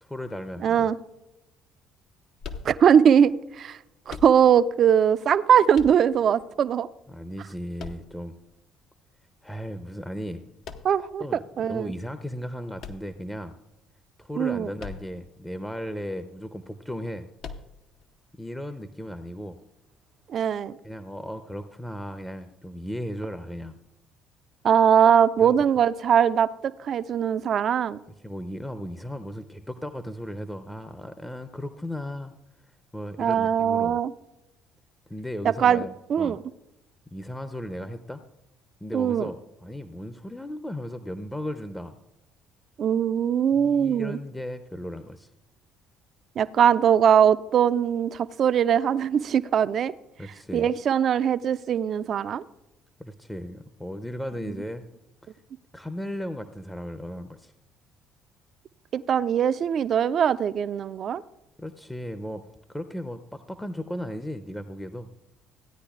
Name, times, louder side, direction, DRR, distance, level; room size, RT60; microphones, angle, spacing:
voice 1, 0.0-0.9 7.1-8.4 9.4-10.4 11.2-11.4 11.7-13.6 14.2-17.3 18.4-19.6 20.8-23.8 25.4-25.6 28.2-32.3 32.9-34.0 35.1-36.4 37.1-38.2 38.8-42.0 43.6-45.3 50.2-50.7 53.0-54.8 55.2-55.3 55.7-57.5 61.6-62.4 62.7-65.1, equal, 10° left, 10 dB, 0.6 m, -36 dB
voice 2, 0.6-1.0 2.6-3.8 4.1-6.9 10.8-11.9 14.4-14.7 20.3-20.8 24.6-26.5 26.8-28.0 33.2-34.1 35.4-35.8 36.1-36.4 38.9-39.3 42.8-44.2 46.4-49.9 50.5-52.4 58.9-61.2, right 8 dB, 50° right, 16 dB, 0.3 m, -21 dB
sound 1, 2.4-3.2 4.1-4.8 5.7-6.4 7.8-8.6 10.6-11.2 12.8-13.7 14.8-15.3 15.6-15.7 17.4-18.0, left 5 dB, 60° left, 0.7 m, -41 dB
15.5 x 9.7 x 2.4 m, 0.93 s
hypercardioid pair, 55°, 0 cm